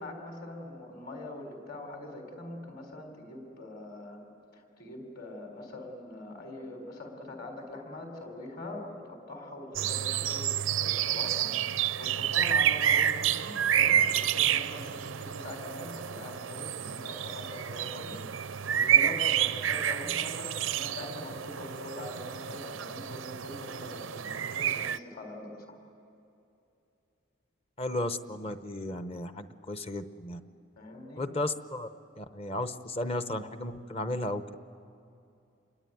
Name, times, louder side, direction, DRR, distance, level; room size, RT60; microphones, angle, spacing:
voice 1, 0.0-4.2 4.5-25.8 30.8-31.2, left 2 dB, 50° left, 3 dB, 4.1 m, -43 dB
sound 1, 9.8-25.0, right 10 dB, 85° right, 0.6 m, -29 dB
voice 2, 27.8-30.4 31.2-31.9 32.2-34.6, left 1 dB, 30° left, 10 dB, 0.9 m, -34 dB
28.0 x 22.5 x 9.3 m, 2.7 s
head